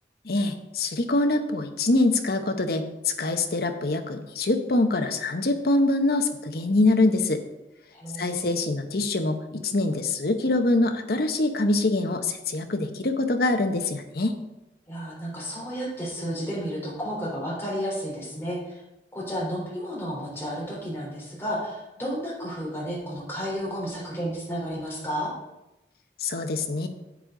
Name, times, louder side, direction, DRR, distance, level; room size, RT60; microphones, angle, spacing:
voice 1, 0.2-7.4 8.2-14.4 26.2-26.9, left 2 dB, 60° left, 6 dB, 0.9 m, -24 dB
voice 2, 7.9-8.6 14.9-18.8 19.1-25.3, equal, 15° left, -5 dB, 3.6 m, -32 dB
9.9 x 8.1 x 3.8 m, 0.97 s
head